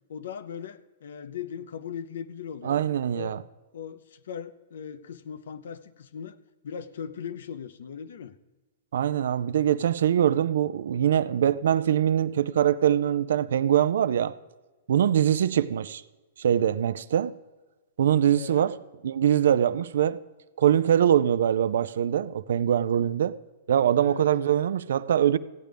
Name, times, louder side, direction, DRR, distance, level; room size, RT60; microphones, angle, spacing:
voice 1, 0.1-2.8 3.1-3.4 3.7-6.4 6.6-8.4 18.4-18.7 24.0-24.3, left 7 dB, 70° left, 0.6 m, -39 dB
voice 2, 2.6-3.4 8.9-14.3 14.9-16.0 16.4-17.4 18.0-18.8 19.0-20.2 20.6-23.3 23.7-25.4, right 10 dB, 75° right, 0.4 m, -23 dB
15.0 x 9.1 x 3.4 m
hypercardioid pair, 120°, 0 cm